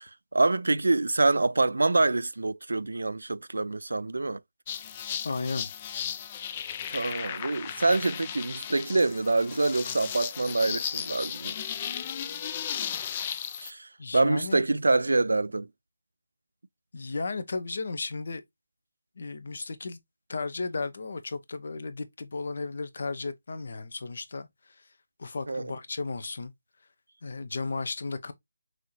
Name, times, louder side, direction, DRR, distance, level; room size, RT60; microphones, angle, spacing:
voice 1, 0.0-4.4 6.9-11.6 13.6-15.7 25.5-25.7, right 2 dB, 75° right, 0.4 m, -26 dB
sound 1, 4.7-13.7, left 9 dB, 25° left, 0.4 m, -35 dB
voice 2, 5.2-5.7 14.0-14.6 16.9-18.4 19.2-20.0 20.3-24.8 25.2-26.5 27.2-28.3, left 3 dB, 55° left, 0.8 m, -34 dB
6.2 x 2.8 x 3.1 m
figure-of-eight pair, 160°, 0 cm